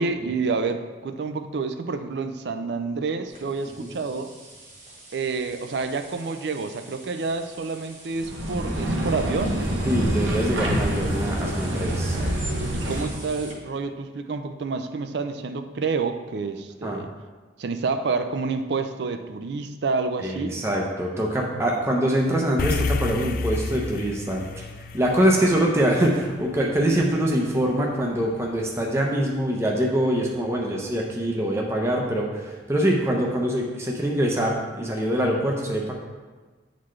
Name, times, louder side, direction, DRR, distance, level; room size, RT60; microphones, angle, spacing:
voice 1, 0.0-4.3 5.1-9.5 12.7-17.1 17.6-20.6, right 4 dB, 65° right, 8 dB, 0.4 m, -28 dB
sound 1, 3.3-13.5, right 2 dB, 40° right, 1.5 m, -46 dB
sound 2, 8.2-13.2, right 1 dB, 85° right, 1.0 m, -26 dB
voice 2, 9.8-12.2 16.8-17.0 20.2-24.6 24.9-35.9, right 1 dB, 15° right, -1 dB, 0.6 m, -24 dB
sound 3, 22.6-27.1, left 3 dB, 50° left, 0.3 m, -30 dB
8.6 x 4.0 x 3.2 m, 1.3 s
head